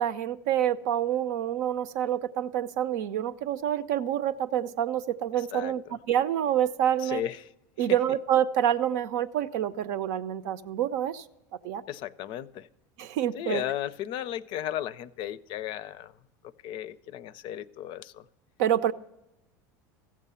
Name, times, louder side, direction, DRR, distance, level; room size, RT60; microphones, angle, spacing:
voice 1, 0.0-7.2 7.8-11.2 11.6-11.8 13.0-13.6 18.6-18.9, right 10 dB, 70° right, 0.6 m, -27 dB
voice 2, 7.0-7.4 11.9-12.7 13.3-16.1 16.6-18.2, left 12 dB, 55° left, 0.5 m, -35 dB
15.0 x 7.4 x 5.6 m
hypercardioid pair, 90°, 10 cm